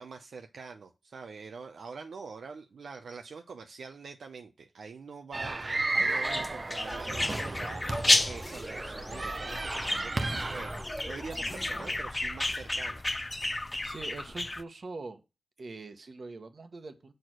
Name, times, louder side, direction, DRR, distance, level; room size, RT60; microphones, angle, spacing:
voice 1, 0.0-10.1 10.5-13.0, right 5 dB, 85° right, 5 dB, 0.6 m, -45 dB
sound 1, 5.3-10.8, right 2 dB, 40° right, 0.6 m, -33 dB
sound 2, 6.2-14.6, left 2 dB, 25° left, 0.5 m, -32 dB
sound 3, 6.9-12.0, equal, ahead, 2.0 m, -43 dB
voice 2, 13.8-15.2 15.6-17.1, right 3 dB, 60° right, 8 dB, 1.1 m, -43 dB
6.4 x 4.5 x 6.1 m, 0.27 s
cardioid pair, 70°, 0 cm